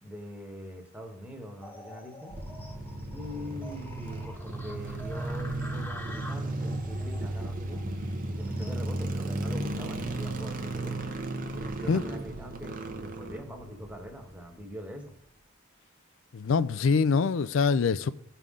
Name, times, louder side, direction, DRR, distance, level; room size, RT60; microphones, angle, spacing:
voice 1, 0.0-2.4 3.1-7.8 8.3-11.1 11.5-15.2, equal, 5° right, 1.2 m, -43 dB
sound 1, 1.6-9.1, left 1 dB, 10° left, 0.9 m, -47 dB
sound 2, 2.3-14.5, right 1 dB, 40° right, 0.9 m, -35 dB
voice 2, 16.3-18.1, left 5 dB, 65° left, 0.4 m, -24 dB
15.5 x 5.6 x 3.7 m
head